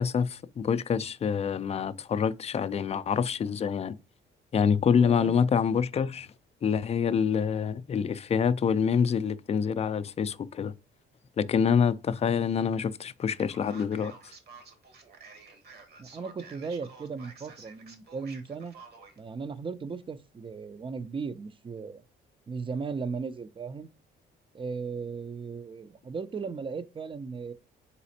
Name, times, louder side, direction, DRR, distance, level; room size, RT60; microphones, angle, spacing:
voice 1, 0.0-3.9 4.5-6.3 6.6-10.7 11.4-14.1, left 7 dB, 30° left, 0.3 m, -26 dB
voice 2, 5.0-5.3 16.0-18.7 19.2-22.0 22.5-23.9 24.5-27.5, right 5 dB, 25° right, 0.5 m, -36 dB
Male speech man speaking, 13.4-19.2, right 4 dB, 55° right, 1.3 m, -51 dB
4.1 x 4.0 x 2.8 m
cardioid pair, 90°, 20 cm